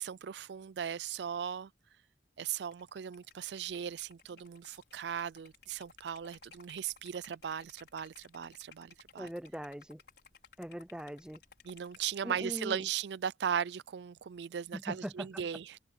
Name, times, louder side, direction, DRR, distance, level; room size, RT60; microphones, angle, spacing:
voice 1, 0.0-1.7 2.4-9.3 11.6-15.8, right 8 dB, 70° right, 0.4 m, -38 dB
Liquid, 2.6-12.2, left 6 dB, 65° left, 5.9 m, -60 dB
voice 2, 9.2-10.0 10.6-11.4 12.2-12.8 14.7-15.4, equal, 5° right, 0.4 m, -41 dB
open air
head